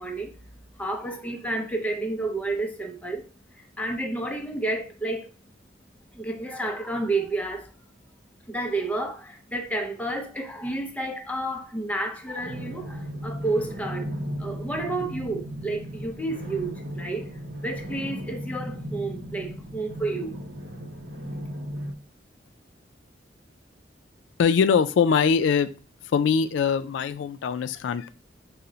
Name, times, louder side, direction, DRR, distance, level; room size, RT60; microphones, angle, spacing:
voice 1, 0.0-5.4 6.1-8.0 8.4-14.1 14.4-20.4, right 2 dB, 10° left, 0.5 m, -31 dB
sound 1, 12.4-21.9, equal, 65° right, 0.8 m, -36 dB
voice 2, 24.4-25.7 26.0-28.1, left 6 dB, 80° left, 0.3 m, -22 dB
5.6 x 2.1 x 3.8 m
head